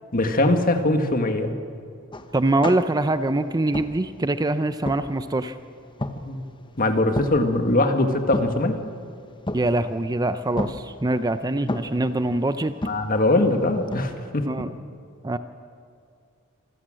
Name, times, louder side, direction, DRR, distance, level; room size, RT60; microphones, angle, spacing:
voice 1, 0.1-1.6 6.2-6.4 6.8-8.8 12.9-14.5, left 2 dB, 40° left, 6 dB, 1.8 m, -21 dB
sound 1, 2.1-14.1, left 1 dB, 25° left, 1.1 m, -35 dB
voice 2, 2.3-5.6 9.5-12.7 14.5-14.7 15.2-15.4, right 2 dB, 20° right, 11 dB, 0.6 m, -24 dB
26.5 x 15.5 x 7.6 m, 2.4 s
head